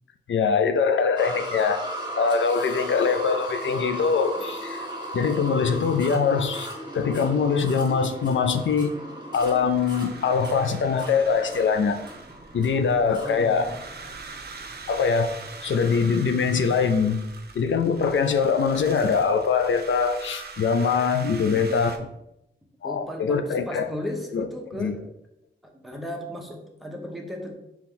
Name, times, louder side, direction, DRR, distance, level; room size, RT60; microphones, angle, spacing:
voice 1, 0.3-1.8 2.1-4.9 5.1-6.7 6.9-9.0 9.3-12.0 12.5-13.6 14.9-17.2 17.5-21.9 22.8-23.8 24.3-24.5 24.8-24.9, left 5 dB, 75° left, 8 dB, 0.4 m, -23 dB
sound 1, 1.2-16.2 16.9-17.0 17.5-17.6, right 1 dB, 25° right, 1.4 m, -37 dB
sound 2, 9.4-22.0, right 4 dB, 55° right, 0.6 m, -43 dB
voice 2, 13.1-13.7 21.3-21.8 22.8-25.1 25.6-27.5, left 1 dB, ahead, 0 dB, 0.9 m, -36 dB
4.1 x 3.0 x 3.8 m, 0.85 s
wide cardioid pair, 65°, 20 cm